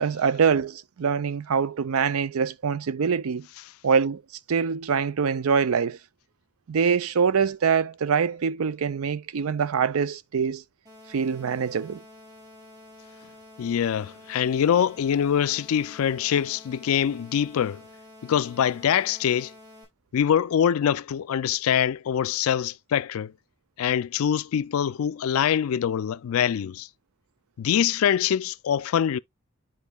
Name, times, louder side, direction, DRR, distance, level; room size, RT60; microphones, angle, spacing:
voice 1, 0.0-3.5 3.8-4.2 4.5-6.0 6.7-10.6 11.1-12.0, right 6 dB, 75° right, 0.5 m, -24 dB
sound 1, 10.8-19.8, left 1 dB, 20° right, 4.7 m, -49 dB
voice 2, 13.6-17.8 18.2-19.5 20.1-23.3 23.8-26.9 27.6-29.2, left 9 dB, 75° left, 0.3 m, -24 dB
10.0 x 4.5 x 2.3 m
head